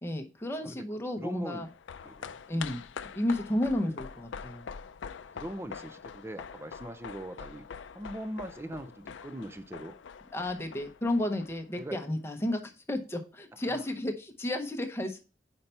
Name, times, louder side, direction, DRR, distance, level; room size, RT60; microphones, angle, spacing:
voice 1, 0.0-1.7 2.5-2.8 3.2-4.6 10.3-15.2, left 1 dB, 15° left, 0.8 m, -32 dB
voice 2, 1.2-1.7 2.0-2.4 3.8-4.0 5.3-7.7 7.9-9.9 10.4-10.5 11.8-12.1 13.7-13.9, right 1 dB, 15° right, 0.4 m, -41 dB
sound 1, 1.5-12.1 12.4-12.5, left 6 dB, 80° left, 0.4 m, -44 dB
5.6 x 4.4 x 5.4 m
head